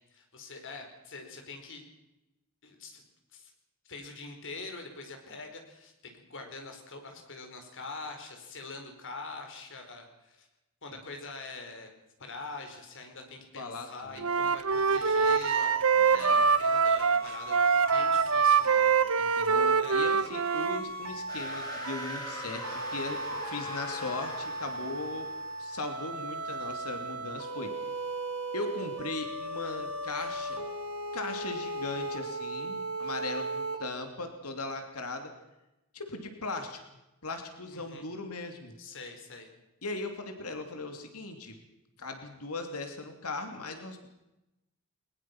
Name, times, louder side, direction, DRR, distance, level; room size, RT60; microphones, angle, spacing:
voice 1, 0.1-1.8 2.6-3.0 3.3-3.5 3.8-10.5 10.8-11.9 12.2-17.6 17.9-20.1 37.7-38.0 38.8-39.5, left 3 dB, 60° left, 4 dB, 4.7 m, -44 dB
voice 2, 13.5-14.2 16.0-16.4 19.2-25.3 25.6-27.7 28.5-30.7 31.1-35.3 35.9-36.8 37.2-38.7 39.8-41.6 42.0-44.1, left 2 dB, 80° left, 6 dB, 2.9 m, -38 dB
Wind instrument woodwind instrument, 14.2-20.8, right 5 dB, 65° right, 1.0 m, -24 dB
sound 1, 14.7-33.8, right 2 dB, 90° right, 4.5 m, -38 dB
sound 2, 21.3-25.7, equal, 20° left, 6.7 m, -41 dB
21.5 x 21.0 x 6.0 m, 0.95 s
head